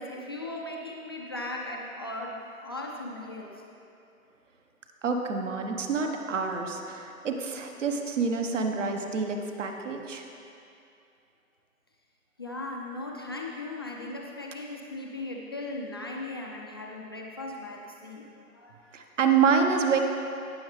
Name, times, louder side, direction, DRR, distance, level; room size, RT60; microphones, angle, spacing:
voice 1, 0.0-3.5 12.4-18.3 18.5-18.8, left 2 dB, 20° left, -2 dB, 0.4 m, -38 dB
voice 2, 5.0-10.3 18.9-20.0, right 5 dB, 55° right, 4 dB, 1.2 m, -27 dB
17.5 x 6.2 x 3.3 m, 2.6 s
figure-of-eight pair, 140°, 43 cm